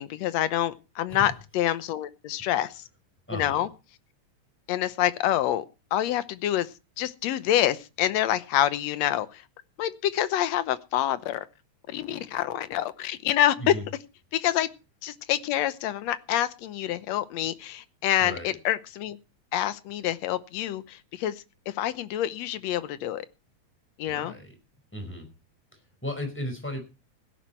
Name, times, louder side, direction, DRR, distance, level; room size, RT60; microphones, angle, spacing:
voice 1, 0.0-2.8 3.3-3.7 4.7-5.6 5.9-6.7 7.0-9.4 9.8-11.5 11.9-13.8 14.3-14.7 15.0-19.2 19.5-23.3 24.0-24.3, left 12 dB, 70° left, 14 dB, 2.0 m, -27 dB
voice 2, 3.3-3.6 13.6-13.8 18.2-18.5 24.1-24.5 24.9-25.3 26.0-26.8, equal, 5° left, 5 dB, 5.0 m, -35 dB
17.0 x 10.5 x 4.5 m, 0.30 s
omnidirectional pair, 3.3 m